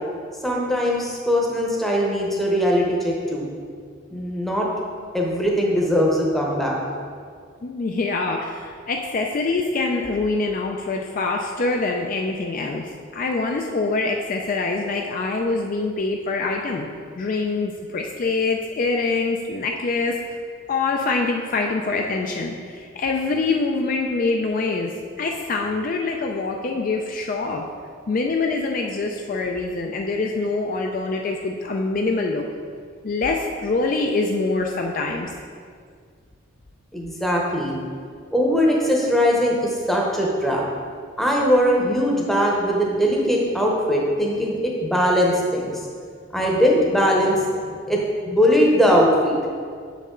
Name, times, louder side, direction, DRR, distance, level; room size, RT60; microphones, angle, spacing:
voice 1, 0.4-3.5 4.1-4.7 5.1-6.8 36.9-37.8 38.3-40.6 41.2-45.7 46.3-47.4 47.9-49.3, equal, ahead, -3 dB, 0.8 m, -20 dB
voice 2, 7.6-16.9 17.2-20.2 20.7-24.9 25.2-27.6 28.1-32.4 33.0-35.3, left 3 dB, 40° left, 2 dB, 0.3 m, -24 dB
6.7 x 5.3 x 3.7 m, 2.1 s
head